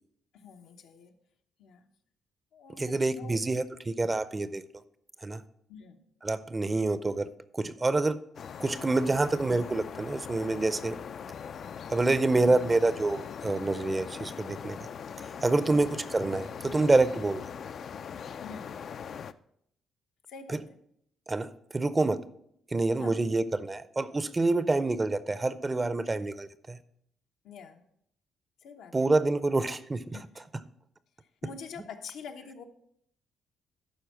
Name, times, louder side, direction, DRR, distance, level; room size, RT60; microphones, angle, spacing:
voice 1, 0.3-1.1 1.6-1.9 2.5-3.4 5.7-6.0 18.4-18.8 20.3-20.6 23.0-23.1 27.4-27.8 28.6-29.1 30.1-30.4 31.4-32.6, left 5 dB, 80° left, 4 dB, 1.0 m, -46 dB
voice 2, 2.8-4.6 5.2-5.4 6.2-7.3 7.5-8.2 8.6-11.0 11.9-14.8 15.4-17.4 21.3-22.2 22.7-26.8 28.9-30.2, right 2 dB, 20° right, 15 dB, 0.5 m, -27 dB
sound 1, 8.3-19.3, left 7 dB, 55° left, 0.4 m, -41 dB
11.5 x 4.5 x 6.0 m, 0.71 s
cardioid pair, 90°, 0 cm